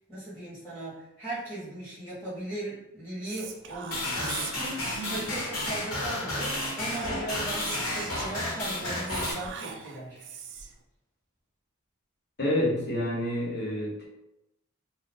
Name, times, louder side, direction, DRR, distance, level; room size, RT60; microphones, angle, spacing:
voice 1, 0.1-10.3, right 2 dB, 10° left, -9 dB, 1.1 m, -38 dB
Whispering, 3.2-5.5 6.4-10.8, right 6 dB, 55° right, 0.4 m, -42 dB
sound 1, 3.9-9.3, left 1 dB, 80° left, 1.2 m, -32 dB
voice 2, 12.4-14.0, left 1 dB, 50° left, -5 dB, 1.1 m, -28 dB
2.6 x 2.4 x 3.6 m, 0.90 s
head